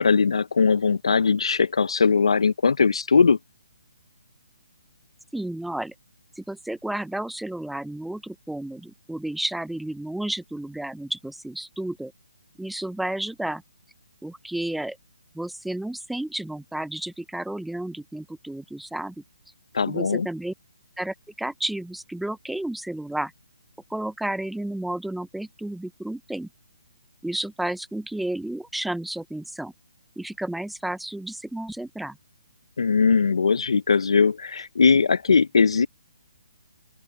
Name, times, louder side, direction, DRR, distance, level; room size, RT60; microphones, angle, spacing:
voice 1, 0.0-3.4 19.7-20.3 32.8-35.9, left 5 dB, 80° left, 0.5 m, -20 dB
voice 2, 5.3-5.9 6.4-12.1 12.6-13.6 14.2-15.0 15.3-19.1 19.9-20.5 21.0-23.3 23.9-26.5 27.2-29.7 30.2-32.2, right 1 dB, ahead, 0.3 m, -32 dB
open air
hypercardioid pair, 155°, 3 cm